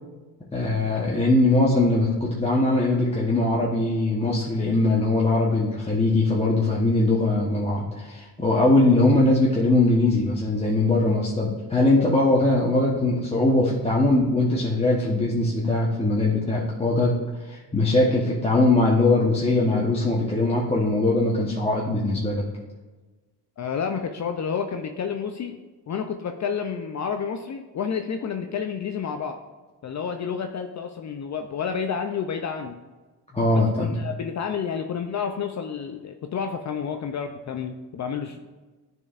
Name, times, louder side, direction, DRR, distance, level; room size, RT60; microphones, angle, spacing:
voice 1, 0.5-17.1 17.4-22.4 33.3-34.0, left 2 dB, 15° left, -4 dB, 1.1 m, -21 dB
voice 2, 23.6-25.6 25.9-29.4 29.8-32.8 33.5-38.4, left 6 dB, 40° left, 6 dB, 0.5 m, -30 dB
9.7 x 4.6 x 2.5 m, 1.3 s
supercardioid pair, 70°, 42 cm